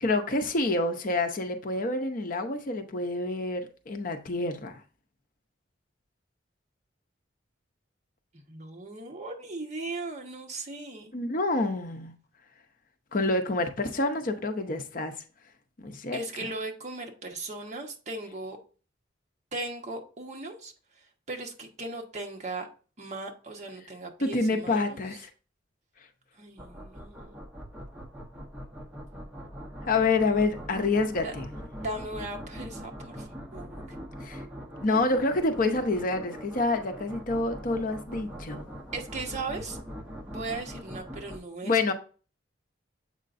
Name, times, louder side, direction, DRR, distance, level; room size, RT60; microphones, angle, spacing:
voice 1, 0.0-4.8 11.1-12.1 13.1-15.1 15.8-16.2 24.2-25.3 29.9-31.5 34.2-34.4 34.8-38.7 41.6-41.9, left 2 dB, 45° left, 0.7 m, -27 dB
voice 2, 8.5-11.1 16.1-18.6 19.5-22.7 23.0-25.0 26.4-27.4 31.2-31.3 31.8-34.0 38.9-39.8 40.3-41.9, right 2 dB, 40° right, 1.2 m, -38 dB
sound 1, 26.6-41.4, equal, 10° right, 0.9 m, -42 dB
7.5 x 5.1 x 2.5 m
head